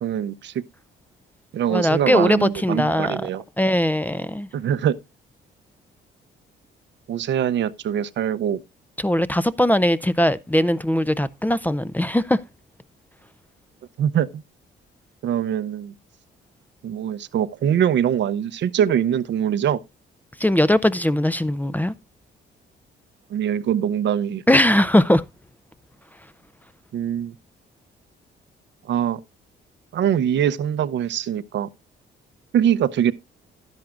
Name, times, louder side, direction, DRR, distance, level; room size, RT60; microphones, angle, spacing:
voice 1, 0.0-0.6 1.5-3.4 4.5-5.0 7.1-8.6 14.0-14.4 15.2-15.9 16.8-19.8 23.3-24.4 26.9-27.3 28.9-29.2 29.9-31.7 32.5-33.1, right 9 dB, 65° right, 0.7 m, -23 dB
voice 2, 1.7-3.2 3.6-4.5 9.0-12.4 20.4-21.9 24.5-25.2, left 1 dB, 10° left, 0.5 m, -20 dB
11.5 x 10.5 x 2.5 m
cardioid pair, 90°, 20 cm